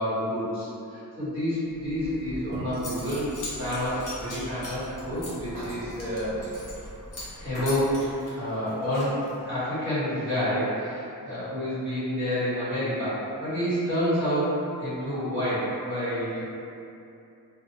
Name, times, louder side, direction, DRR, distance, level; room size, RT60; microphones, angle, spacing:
voice 1, 0.0-3.3 3.6-6.4 7.4-8.1 8.3-16.5, equal, 35° right, -13 dB, 1.1 m, -29 dB
sound 1, 1.7-8.2, equal, 20° left, 0.6 m, -42 dB
Zipper (clothing) / Coin (dropping), 2.4-2.5 2.7-6.9 7.1-7.4 7.6-9.4, left 2 dB, 55° left, 0.8 m, -41 dB
2.7 x 2.1 x 2.7 m, 2.7 s
wide cardioid pair, 170°, 37 cm